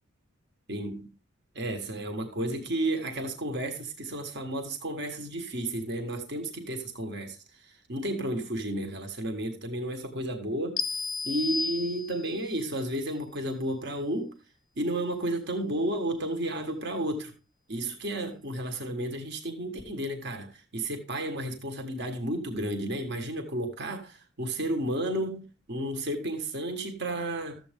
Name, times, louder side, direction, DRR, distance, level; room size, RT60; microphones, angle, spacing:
voice 1, 0.7-1.1 1.5-7.4 7.6-10.8 11.2-14.3 14.8-17.3 17.7-27.6, right 1 dB, 55° right, 1.5 m, -32 dB
sound 1, 10.8-12.5, left 4 dB, 40° left, 0.5 m, -32 dB
13.0 x 7.8 x 3.6 m
head